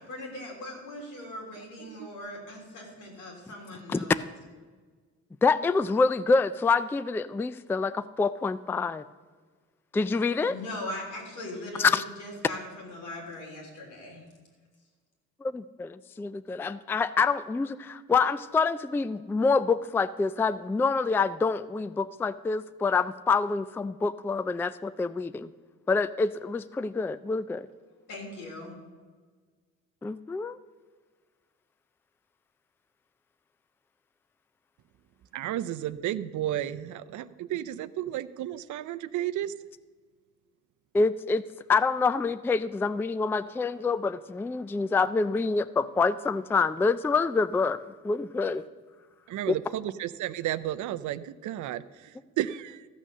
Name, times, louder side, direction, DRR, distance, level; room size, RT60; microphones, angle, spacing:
voice 1, 0.1-4.1 10.5-14.2 28.1-28.7, left 1 dB, 85° left, 0 dB, 3.5 m, -40 dB
voice 2, 1.6-2.1 35.3-39.5 49.3-52.9, right 12 dB, 75° right, 15 dB, 0.6 m, -33 dB
voice 3, 5.4-9.0 9.9-10.6 11.8-12.0 15.4-25.5 25.9-27.7 30.0-30.6 40.9-41.4 41.7-47.8 48.0-48.6, left 4 dB, 10° left, 15 dB, 0.3 m, -26 dB
14.0 x 6.3 x 6.7 m, 1.5 s
cardioid pair, 90°, 30 cm